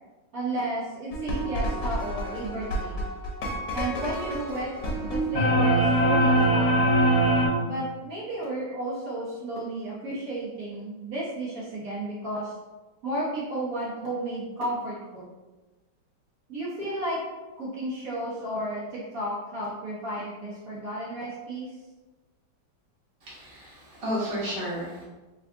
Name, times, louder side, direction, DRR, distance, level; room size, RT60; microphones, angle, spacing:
voice 1, 0.3-3.0 3.7-4.7 5.0-7.0 7.6-12.5 13.0-15.3 16.5-17.2 17.6-21.7, right 1 dB, 60° right, -7 dB, 1.2 m, -33 dB
sound 1, 1.1-7.5, right 1 dB, 70° left, 1.3 m, -24 dB
voice 2, 23.2-25.0, equal, 25° right, -7 dB, 0.9 m, -32 dB
3.6 x 2.3 x 3.5 m, 1.2 s
omnidirectional pair, 1.9 m